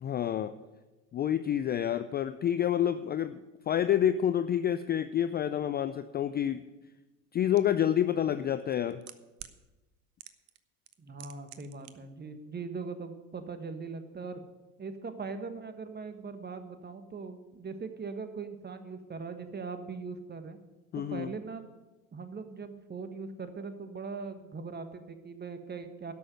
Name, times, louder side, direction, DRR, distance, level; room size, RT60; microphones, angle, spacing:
voice 1, 0.0-0.5 1.1-3.4 3.7-6.6 7.3-9.0 20.9-21.3, left 10 dB, 25° left, 12 dB, 0.4 m, -28 dB
sound 1, 7.6-7.7 8.6-9.6 10.2-10.6 10.9-11.9 12.2-12.3, right 15 dB, 65° right, 1.0 m, -47 dB
voice 2, 11.0-14.4 14.8-20.6 20.9-21.6 22.1-26.1, right 4 dB, 20° right, 9 dB, 1.4 m, -40 dB
12.5 x 6.3 x 9.2 m, 1.1 s
hypercardioid pair, 80°, 44 cm